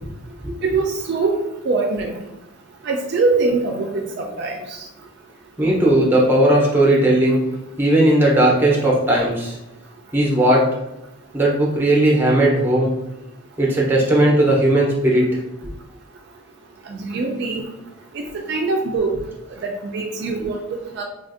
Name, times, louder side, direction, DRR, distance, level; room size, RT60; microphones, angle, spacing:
voice 1, 0.6-1.4 1.7-2.1 2.9-4.6 16.9-17.7 18.1-19.1 19.6-20.6 20.9-21.0, right 3 dB, 50° right, 1 dB, 0.3 m, -22 dB
voice 2, 5.6-7.4 7.8-9.6 10.1-10.7 11.3-12.9 13.6-15.4, right 1 dB, 10° right, -3 dB, 0.6 m, -16 dB
3.3 x 2.4 x 2.5 m, 0.91 s
head